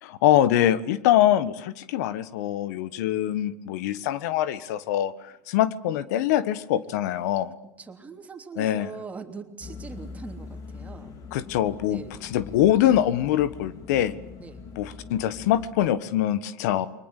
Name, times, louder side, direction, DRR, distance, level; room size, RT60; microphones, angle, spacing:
voice 1, 0.0-7.5 8.6-8.9 11.3-14.1 14.8-16.9, left 12 dB, 80° left, 15 dB, 1.5 m, -24 dB
voice 2, 7.8-11.2 11.9-12.2 14.4-14.7, right 5 dB, 15° right, 5 dB, 3.1 m, -41 dB
sound 1, 9.6-15.9, left 4 dB, 40° left, 4.3 m, -42 dB
29.5 x 23.5 x 8.5 m, 0.84 s
supercardioid pair, 140°, 9 cm